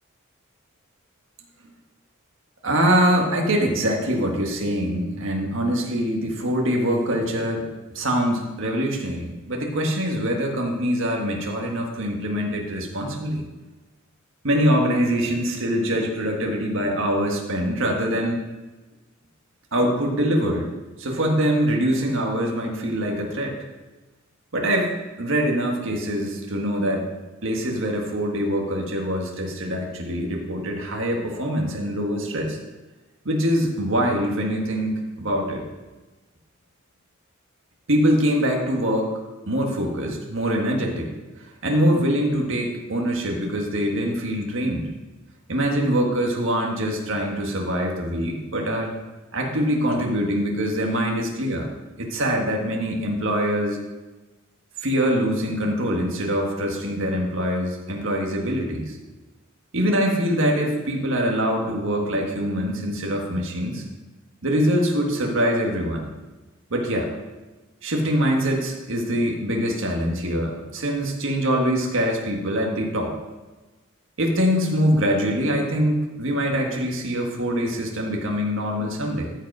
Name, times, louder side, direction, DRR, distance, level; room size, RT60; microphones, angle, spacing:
voice 1, 2.6-7.7 7.9-13.4 14.4-18.4 19.7-20.7 21.0-23.6 24.5-27.1 27.4-32.6 33.2-35.6 37.9-39.2 39.5-41.1 41.6-44.9 45.5-48.9 49.3-51.7 52.0-53.8 54.8-59.0 59.7-63.8 64.4-66.1 66.7-67.1 67.8-73.1 74.2-79.3, equal, 65° right, 1 dB, 1.7 m, -24 dB
14.0 x 5.2 x 4.8 m, 1.2 s
head